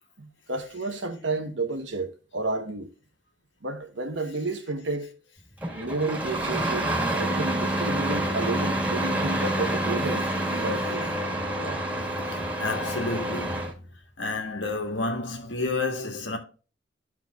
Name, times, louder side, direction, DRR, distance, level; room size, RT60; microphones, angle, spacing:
voice 1, 0.2-2.9 3.6-5.1 5.7-11.1 11.6-11.8, right 2 dB, 80° right, 1.2 m, -31 dB
Engine starting, 5.6-13.7, right 1 dB, 10° right, 1.8 m, -28 dB
voice 2, 12.3-13.9 14.2-16.4, left 3 dB, 75° left, 1.8 m, -30 dB
13.0 x 4.5 x 2.5 m
head